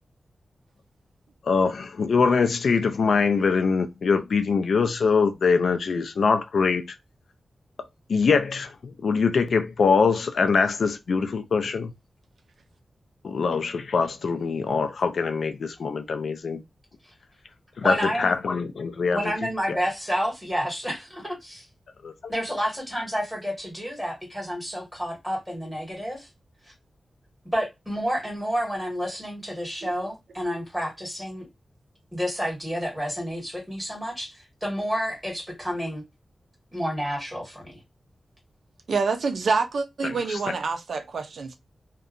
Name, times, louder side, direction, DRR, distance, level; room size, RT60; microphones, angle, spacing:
voice 1, 1.5-6.9 8.1-11.9 13.2-16.6 17.8-19.2 22.0-22.1 40.3-40.4, left 5 dB, 80° left, 0.4 m, -23 dB
voice 2, 17.8-18.3 19.1-21.6 22.3-26.3 27.5-31.5 32.1-36.0 36.7-37.8, equal, ahead, 1.5 m, -30 dB
voice 3, 38.9-41.6, right 4 dB, 85° right, 0.5 m, -26 dB
2.8 x 2.2 x 2.4 m
wide cardioid pair, 145°, 0 cm